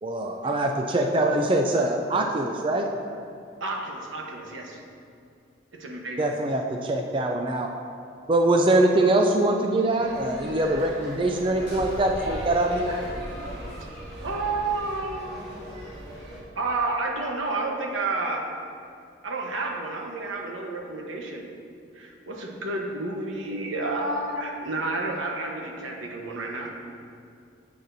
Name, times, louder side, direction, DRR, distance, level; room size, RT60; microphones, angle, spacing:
voice 1, 0.0-2.9 6.2-7.7 8.3-12.9, right 1 dB, 25° right, 3 dB, 0.4 m, -23 dB
voice 2, 3.6-4.8 5.7-6.3 14.2-16.0 16.6-18.5 19.2-21.4 21.9-26.7, right 2 dB, 85° right, 0 dB, 1.2 m, -30 dB
sound 1, 10.0-16.4, equal, 60° right, 2.1 m, -38 dB
10.0 x 8.4 x 2.7 m, 2.4 s
head